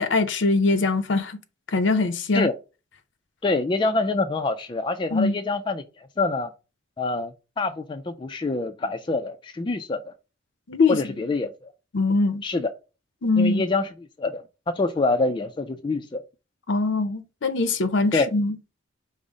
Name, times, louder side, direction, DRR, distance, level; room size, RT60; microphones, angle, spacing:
voice 1, 0.0-1.4 1.7-2.5 5.1-5.4 10.7-11.0 11.9-12.4 13.2-13.6 16.7-18.6, left 3 dB, 65° left, 0.6 m, -22 dB
voice 2, 3.4-6.5 7.0-10.1 10.9-11.5 12.4-12.7 13.4-13.9 14.2-16.2 18.1-18.3, left 3 dB, 25° left, 0.3 m, -26 dB
5.4 x 2.0 x 4.8 m
head